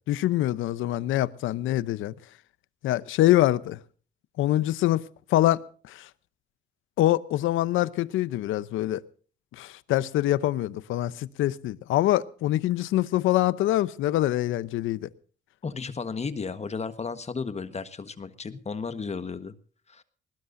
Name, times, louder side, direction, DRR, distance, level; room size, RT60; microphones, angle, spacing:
voice 1, 0.1-2.1 2.8-3.8 4.4-5.0 5.3-6.1 7.0-9.0 9.6-15.1, left 14 dB, 85° left, 0.8 m, -24 dB
voice 2, 15.6-19.5 19.9-20.0, left 5 dB, 35° left, 1.4 m, -34 dB
21.0 x 19.5 x 2.7 m
cardioid pair, 90°, 20 cm